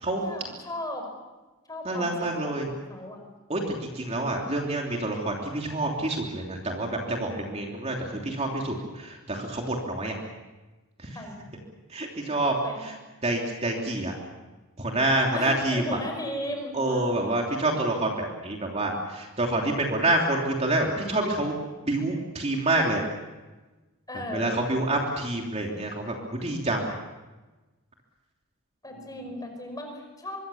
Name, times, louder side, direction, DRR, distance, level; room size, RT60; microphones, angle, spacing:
voice 1, 0.2-1.1 1.7-3.2 11.1-11.4 12.6-12.9 15.3-17.6 24.1-24.6 24.9-25.0 28.8-30.4, left 1 dB, 15° left, 4 dB, 5.3 m, -36 dB
voice 2, 1.8-2.7 3.5-3.6 3.9-10.1 11.9-12.5 13.2-14.1 14.8-15.8 16.7-21.5 21.9-23.0 24.3-26.1 26.4-26.9, right 2 dB, 30° right, 0 dB, 3.1 m, -27 dB
24.5 x 23.5 x 7.2 m, 1.2 s
head